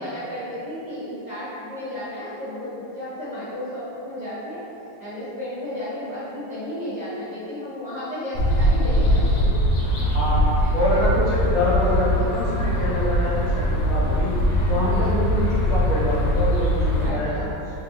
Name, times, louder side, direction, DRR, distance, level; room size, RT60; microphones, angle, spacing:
voice 1, 0.0-4.6 5.0-9.8 10.6-11.0 17.0-17.4, left 1 dB, 30° right, -15 dB, 0.8 m, -33 dB
sound 1, 8.3-17.1, equal, 80° left, 1.5 m, -21 dB
voice 2, 10.0-14.3 14.7-17.5, left 1 dB, 55° left, -9 dB, 1.2 m, -25 dB
3.4 x 2.6 x 3.0 m, 2.9 s
omnidirectional pair, 2.2 m